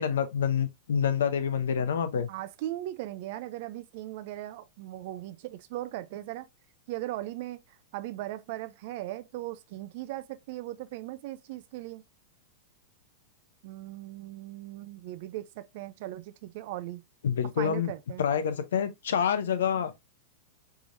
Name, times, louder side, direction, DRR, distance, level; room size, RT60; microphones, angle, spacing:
voice 1, 0.0-2.3 17.2-17.9 18.2-19.9, left 7 dB, 80° left, 0.7 m, -27 dB
voice 2, 2.3-6.5 6.9-7.6 7.9-12.0 13.6-17.0 17.6-18.3, right 15 dB, 60° right, 0.4 m, -38 dB
4.7 x 3.1 x 2.6 m
hypercardioid pair, 120°, 0 cm